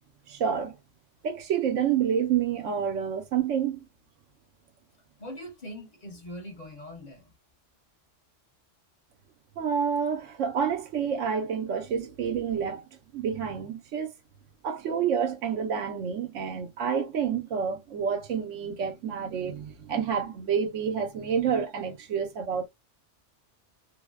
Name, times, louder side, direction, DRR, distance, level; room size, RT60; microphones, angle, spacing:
voice 1, 0.3-0.8 1.2-3.8 9.6-12.9 13.1-14.1 14.6-22.7, right 7 dB, 85° right, 1.0 m, -28 dB
voice 2, 5.2-7.3, equal, 40° left, 0.7 m, -42 dB
2.6 x 2.1 x 2.2 m
omnidirectional pair, 1.2 m